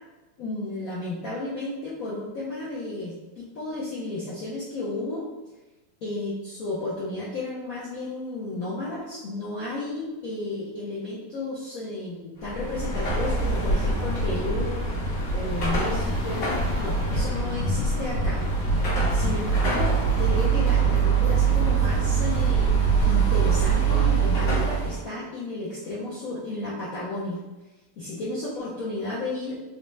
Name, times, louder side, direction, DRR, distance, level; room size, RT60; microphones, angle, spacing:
voice 1, 0.4-5.3 6.0-16.5 16.8-18.4 19.1-27.4 28.0-29.6, left 2 dB, 85° left, -7 dB, 0.7 m, -33 dB
Car passing by / Traffic noise roadway noise / Engine, 12.4-25.0, right 4 dB, 55° left, 1.4 m, -23 dB
3.9 x 2.2 x 3.0 m, 1.1 s
omnidirectional pair, 2.4 m